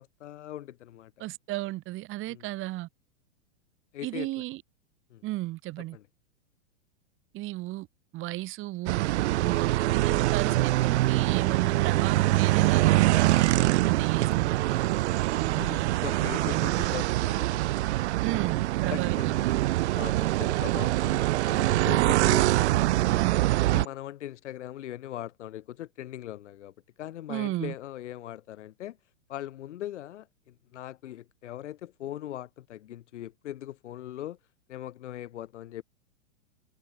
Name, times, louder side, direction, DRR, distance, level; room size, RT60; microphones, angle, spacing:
voice 1, 0.0-1.1 2.3-2.5 3.9-4.4 5.1-5.2 5.9-6.1 15.5-17.7 18.9-19.6 19.9-23.2 23.7-29.0 29.3-34.4 34.7-35.8, left 13 dB, 70° left, 2.9 m, -40 dB
voice 2, 1.2-2.9 4.0-4.6 5.2-6.0 7.3-7.9 8.1-9.7 10.0-14.8 15.4-15.9 16.3-16.8 18.2-19.3 23.1-23.4 27.3-27.7, right 17 dB, 35° right, 1.8 m, -34 dB
sound 1, 8.9-23.9, right 17 dB, 65° right, 0.5 m, -24 dB
hypercardioid pair, 115°, 37 cm